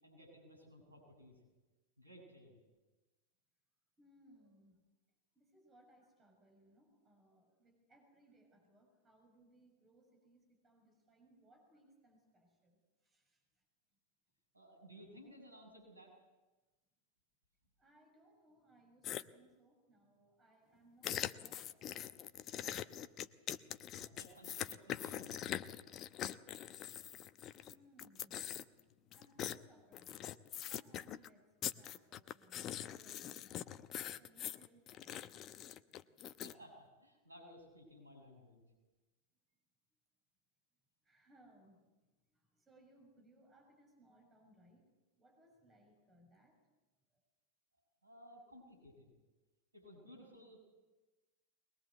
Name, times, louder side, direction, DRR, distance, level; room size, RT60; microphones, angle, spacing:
voice 1, 0.0-1.4 2.0-2.6 14.5-16.1 23.9-25.5 36.4-38.6 48.0-49.1 49.7-50.8, equal, 80° right, 1 dB, 7.1 m, -58 dB
voice 2, 4.0-4.8 5.3-13.6 17.8-22.0 27.6-28.4 29.1-30.4 30.7-33.9 34.2-35.4 41.0-41.8 42.3-44.8 45.2-46.6, right 1 dB, 20° right, 2 dB, 6.6 m, -67 dB
sound 1, 19.0-19.2 21.0-27.7 28.0-28.8 29.1-29.6 29.9-31.3 31.6-36.5, left 11 dB, 30° left, 0.8 m, -43 dB
22.0 x 21.5 x 8.2 m, 1.2 s
figure-of-eight pair, 90°, 0 cm